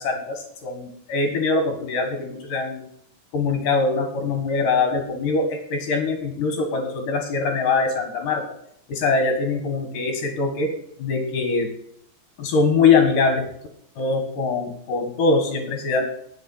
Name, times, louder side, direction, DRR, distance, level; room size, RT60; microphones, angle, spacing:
voice 1, 0.0-2.9 3.3-8.4 8.9-10.7 11.0-11.7 12.4-13.4 14.0-16.0, left 4 dB, 60° left, 4 dB, 3.1 m, -22 dB
20.0 x 6.8 x 5.7 m, 0.72 s
omnidirectional pair, 4.7 m